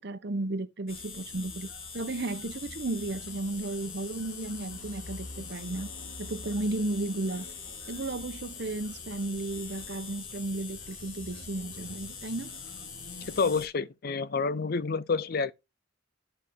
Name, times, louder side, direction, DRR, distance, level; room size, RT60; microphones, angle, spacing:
voice 1, 0.0-1.7 1.9-5.9 6.2-7.4 7.9-12.5, right 2 dB, 55° right, 0.8 m, -34 dB
sound 1, 0.9-13.7, left 4 dB, 85° left, 2.2 m, -42 dB
voice 2, 13.4-15.5, left 4 dB, 50° left, 0.5 m, -28 dB
10.0 x 4.4 x 3.6 m
head